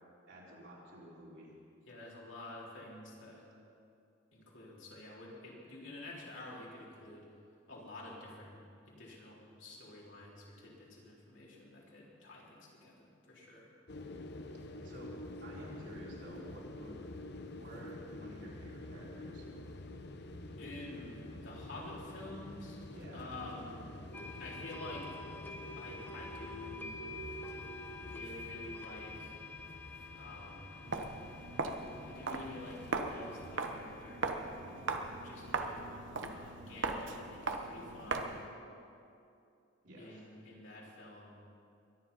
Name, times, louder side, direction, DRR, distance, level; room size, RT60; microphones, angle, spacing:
voice 1, 0.3-1.6 14.5-15.1 15.4-17.0 17.5-19.5 22.9-23.3 34.6-34.9 39.8-40.2, right 1 dB, 70° right, -6 dB, 4.7 m, -52 dB
voice 2, 1.8-3.5 4.3-7.3 7.7-8.6 8.9-13.7 20.6-22.8 23.1-23.9 24.4-25.2 25.8-27.0 28.0-29.4 30.1-30.7 32.1-34.3 35.2-38.3 40.0-41.4, left 2 dB, 80° left, -4 dB, 3.9 m, -49 dB
sound 1, 13.9-33.6, left 1 dB, 60° left, 0.9 m, -48 dB
sound 2, 24.1-35.7, left 3 dB, 10° left, 1.0 m, -50 dB
Walk footsteps, 30.8-38.5, right 3 dB, 90° right, 1.1 m, -39 dB
22.5 x 10.5 x 5.6 m, 2.5 s
head